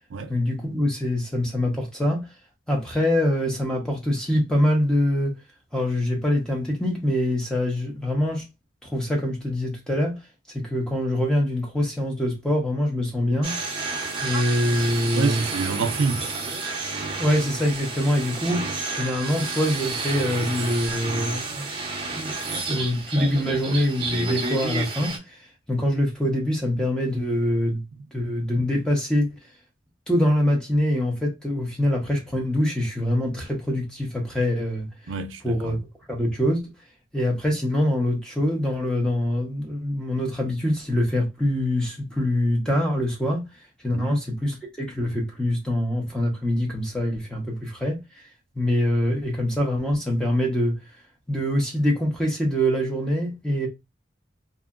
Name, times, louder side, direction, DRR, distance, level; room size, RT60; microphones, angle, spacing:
voice 1, 0.3-2.3 2.7-5.4 5.7-8.5 8.8-10.2 10.5-13.6 14.2-15.4 17.2-18.7 18.9-21.7 22.2-27.8 28.1-29.3 30.1-34.9 35.4-35.8 36.1-36.7 37.1-43.4 43.8-48.0 48.5-50.8 51.3-53.7, left 1 dB, 5° left, 0.8 m, -24 dB
sound 1, 13.4-25.2, right 3 dB, 25° right, 0.7 m, -30 dB
voice 2, 15.1-16.2 35.1-35.8 43.9-44.2, right 4 dB, 85° right, 0.5 m, -27 dB
2.7 x 2.7 x 2.5 m
head